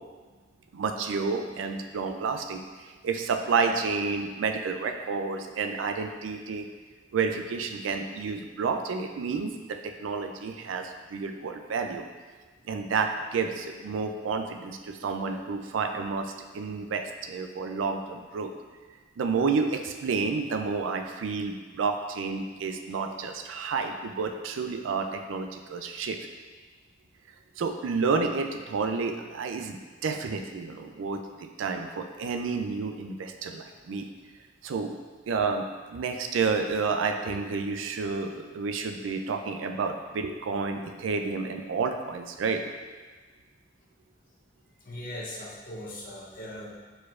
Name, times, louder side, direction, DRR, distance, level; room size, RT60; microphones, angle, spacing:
voice 1, 0.7-6.7 7.1-12.1 12.6-18.5 19.2-26.2 27.6-34.1 34.6-35.0 35.3-42.6, right 4 dB, 80° right, 5 dB, 0.4 m, -30 dB
voice 2, 44.8-46.8, left 1 dB, 50° left, -4 dB, 0.8 m, -39 dB
4.5 x 4.3 x 2.4 m, 1.4 s
head